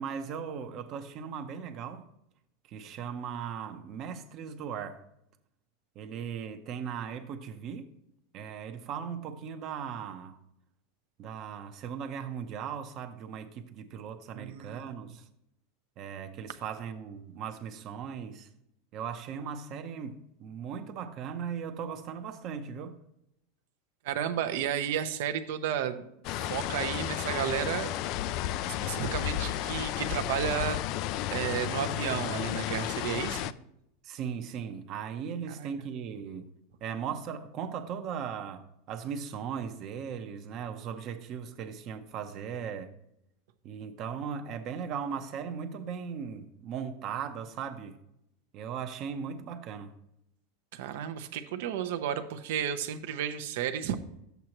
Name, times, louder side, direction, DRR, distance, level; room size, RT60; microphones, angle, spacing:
voice 1, 0.0-2.0 2.7-5.0 5.9-7.9 8.3-10.4 11.2-15.3 16.0-18.5 18.9-23.0 34.0-36.5 36.8-42.9 43.6-48.0 48.5-50.0, right 7 dB, 35° right, 0.8 m, -38 dB
voice 2, 14.3-14.9 24.0-26.0 26.4-27.9 28.7-30.8 31.3-33.5 35.6-35.7 50.7-53.9, right 9 dB, 65° right, 0.9 m, -32 dB
sound 1, 26.2-33.5, left 13 dB, 45° left, 0.3 m, -33 dB
12.0 x 8.1 x 3.0 m
supercardioid pair, 160°, 0 cm